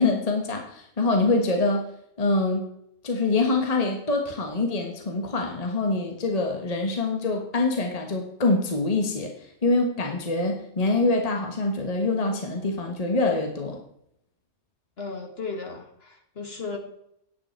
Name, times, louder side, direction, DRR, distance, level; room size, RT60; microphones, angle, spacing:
voice 1, 0.0-1.8 2.2-2.6 3.0-13.8, left 3 dB, 30° left, 2 dB, 1.4 m, -25 dB
voice 2, 15.0-16.8, left 4 dB, 55° left, 3 dB, 2.1 m, -35 dB
9.8 x 8.7 x 4.5 m, 0.73 s
omnidirectional pair, 1.3 m